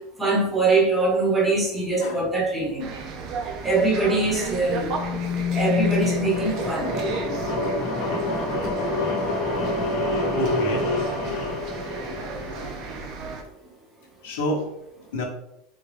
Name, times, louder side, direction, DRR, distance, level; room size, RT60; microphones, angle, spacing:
voice 1, 0.2-2.9 3.6-4.9 5.5-6.9, right 3 dB, 10° right, -2 dB, 0.8 m, -22 dB
sound 1, 2.8-13.4, right 4 dB, 45° right, 0.5 m, -35 dB
sound 2, 4.3-6.8, left 8 dB, 25° left, 1.2 m, -28 dB
sound 3, 5.1-13.0, left 1 dB, 45° left, 0.9 m, -28 dB
voice 2, 10.3-10.9 13.4-13.5 14.2-14.7 15.1-15.2, left 1 dB, 85° left, -2 dB, 0.9 m, -28 dB
3.7 x 2.3 x 3.2 m, 0.83 s
supercardioid pair, 145°, 0 cm